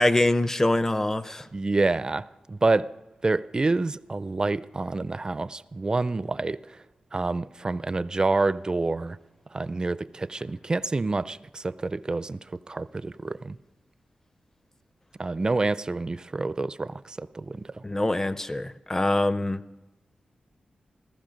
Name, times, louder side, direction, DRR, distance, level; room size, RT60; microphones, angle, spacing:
voice 1, 0.0-1.5 17.8-19.6, left 1 dB, 20° left, 0.6 m, -24 dB
voice 2, 1.5-2.9 3.2-6.6 7.1-9.2 9.5-12.4 12.7-13.6 15.2-17.7, right 3 dB, 30° right, 0.4 m, -27 dB
15.0 x 15.0 x 5.2 m
cardioid pair, 75°, 3 cm